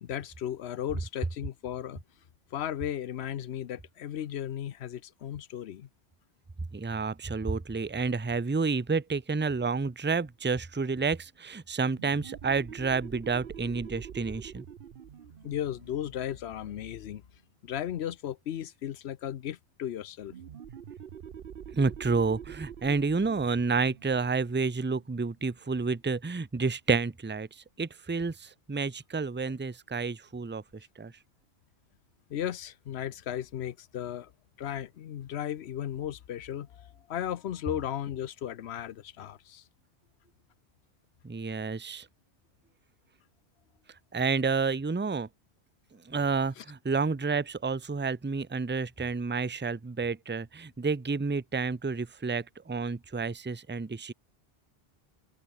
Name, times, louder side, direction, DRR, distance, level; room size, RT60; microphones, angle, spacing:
voice 1, 0.0-2.0 2.5-5.9 15.4-17.2 17.6-20.3 29.4-29.5 32.3-34.3 34.6-39.6 46.6-46.7, left 10 dB, 80° left, 1.0 m, -35 dB
voice 2, 6.7-14.6 21.7-27.5 27.8-30.6 31.0-31.1 41.2-42.1 44.1-45.3 46.1-54.1, right 4 dB, 15° right, 0.4 m, -30 dB
sound 1, 11.9-17.3 20.3-25.6, right 8 dB, 60° right, 1.0 m, -46 dB
omnidirectional pair, 1.1 m